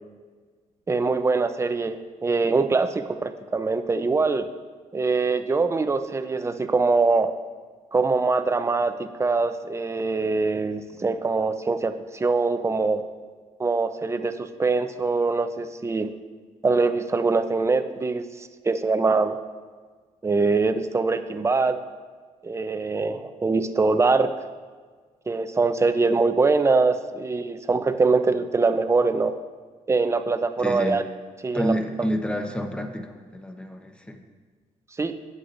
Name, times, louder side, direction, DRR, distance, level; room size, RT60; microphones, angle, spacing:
voice 1, 0.9-4.5 4.9-7.3 7.9-13.0 13.6-16.1 16.6-19.4 20.2-21.8 22.4-24.3 25.3-29.3 29.9-31.0 31.4-31.7 35.0-35.1, right 3 dB, 20° right, 9 dB, 0.6 m, -23 dB
voice 2, 30.6-31.1 31.5-34.3, equal, 5° left, 5 dB, 0.9 m, -29 dB
16.0 x 8.2 x 2.6 m, 1.5 s
cardioid pair, 105°, 14 cm